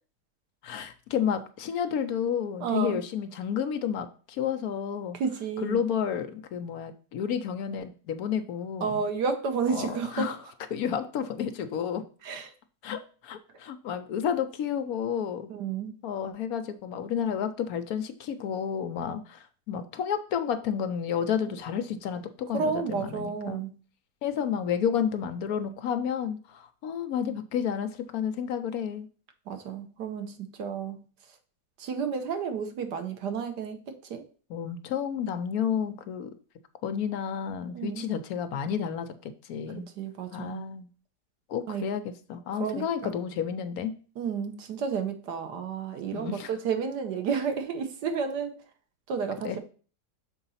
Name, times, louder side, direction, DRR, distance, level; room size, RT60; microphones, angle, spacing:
voice 1, 0.6-5.2 5.6-9.1 9.7-10.4 10.7-12.0 12.8-15.5 16.0-23.6 24.2-29.1 34.5-36.3 36.8-39.9 40.3-40.9 41.5-43.9 46.1-46.5 49.4-49.6, left 8 dB, 70° left, 10 dB, 1.1 m, -31 dB
voice 2, 2.6-3.0 5.1-5.8 8.8-10.3 12.2-12.5 15.5-15.9 22.5-23.7 29.5-31.0 31.8-34.2 37.7-38.0 39.8-40.6 41.7-41.9 42.6-43.2 44.2-48.6 49.1-49.6, right 6 dB, 90° right, 7 dB, 1.6 m, -31 dB
6.7 x 3.9 x 5.6 m, 0.39 s
omnidirectional pair, 1.7 m